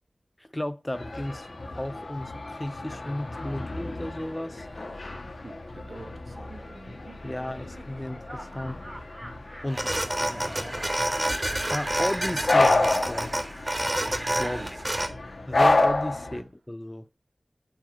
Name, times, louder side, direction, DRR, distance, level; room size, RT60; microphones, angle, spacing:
voice 1, 0.4-1.5 1.8-4.7 7.2-8.8 9.6-10.8 11.2-11.4 11.7-13.4 14.4-14.6 15.5-17.1, left 1 dB, 15° left, 0.5 m, -34 dB
sound 1, 0.9-16.4, left 2 dB, 70° left, 1.6 m, -30 dB
voice 2, 5.4-7.0 14.4-15.1 16.3-16.4, right 3 dB, 70° right, 1.1 m, -46 dB
Laughter, 6.3-13.8, right 1 dB, 10° right, 3.1 m, -47 dB
sound 2, 9.7-15.1, right 1 dB, 25° right, 1.4 m, -28 dB
7.3 x 4.2 x 5.0 m
wide cardioid pair, 75°, 0 cm